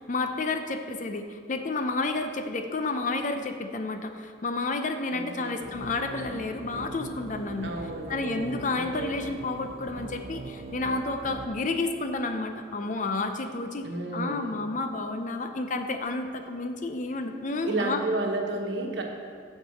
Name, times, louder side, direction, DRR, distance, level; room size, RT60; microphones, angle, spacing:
voice 1, 0.0-7.8 8.1-18.0, left 3 dB, 40° left, 7 dB, 0.6 m, -31 dB
voice 2, 5.1-5.6 7.6-9.2 13.8-14.5 17.6-19.0, right 2 dB, 70° right, 1 dB, 1.2 m, -32 dB
sound 1, 5.6-11.5, right 2 dB, 35° right, 0.5 m, -41 dB
7.3 x 6.7 x 6.2 m, 2.1 s
head